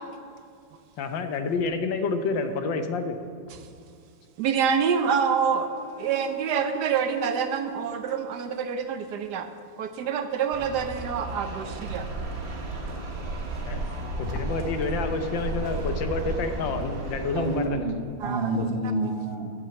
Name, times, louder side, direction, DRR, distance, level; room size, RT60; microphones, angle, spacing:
voice 1, 1.0-3.2 13.6-13.9 14.2-17.9, left 4 dB, 80° left, 8 dB, 1.6 m, -29 dB
voice 2, 4.4-5.7 6.0-9.5 9.8-12.1 18.2-18.4, right 7 dB, 70° right, 8 dB, 1.2 m, -26 dB
Wind instrument woodwind instrument, 4.7-9.0, right 4 dB, 65° left, 3.5 m, -45 dB
sound 1, 10.5-17.7, right 2 dB, 85° right, 2.2 m, -33 dB
voice 3, 17.3-19.5, right 2 dB, 40° right, 2 dB, 1.0 m, -28 dB
9.0 x 9.0 x 7.6 m, 2.3 s
omnidirectional pair, 2.0 m